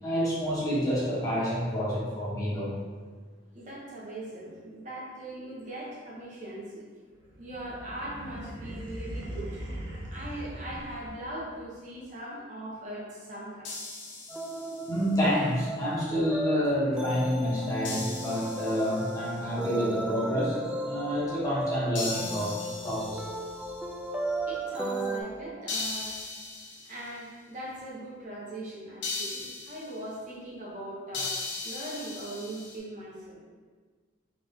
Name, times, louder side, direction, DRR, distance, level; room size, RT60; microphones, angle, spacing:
voice 1, 0.0-2.8 14.5-22.5 22.8-23.2, equal, 20° left, -9 dB, 1.3 m, -28 dB
voice 2, 3.5-6.9 7.4-9.6 10.1-13.7 24.5-26.2 26.8-33.4, right 1 dB, 40° right, -6 dB, 0.9 m, -40 dB
sound 1, 7.2-11.5, right 1 dB, 70° right, 0.8 m, -40 dB
sound 2, 13.6-15.1 17.8-19.4 21.9-23.8 25.7-27.1 29.0-30.0 31.1-32.8, left 3 dB, 80° left, 1.0 m, -38 dB
sound 3, 14.3-25.2, right 1 dB, 5° right, 0.3 m, -35 dB
4.0 x 3.3 x 3.5 m, 1.5 s
head